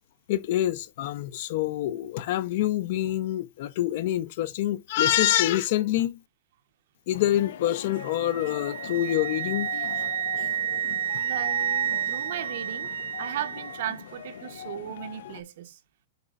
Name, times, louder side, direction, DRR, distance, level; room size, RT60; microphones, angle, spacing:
voice 1, 0.3-6.2 7.1-9.9 10.4-10.5, left 13 dB, 50° left, 0.5 m, -26 dB
sound 1, 7.1-15.4, left 10 dB, 75° left, 0.8 m, -41 dB
Wind instrument woodwind instrument, 8.0-13.9, right 10 dB, 80° right, 0.3 m, -30 dB
voice 2, 11.2-15.8, right 11 dB, 60° right, 0.8 m, -36 dB
8.0 x 5.0 x 2.3 m
supercardioid pair, 170°, 0 cm